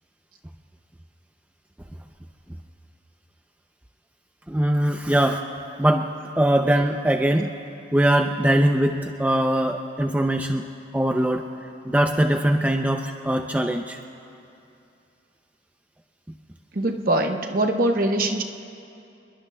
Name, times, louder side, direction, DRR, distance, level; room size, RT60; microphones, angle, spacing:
voice 1, 4.5-5.4 5.8-6.1 6.4-7.5 7.9-10.7 10.9-11.4 11.9-14.0, right 1 dB, 10° right, 4 dB, 0.4 m, -21 dB
voice 2, 16.7-18.4, right 1 dB, 45° right, 4 dB, 0.9 m, -22 dB
29.5 x 21.5 x 2.2 m, 2.7 s
head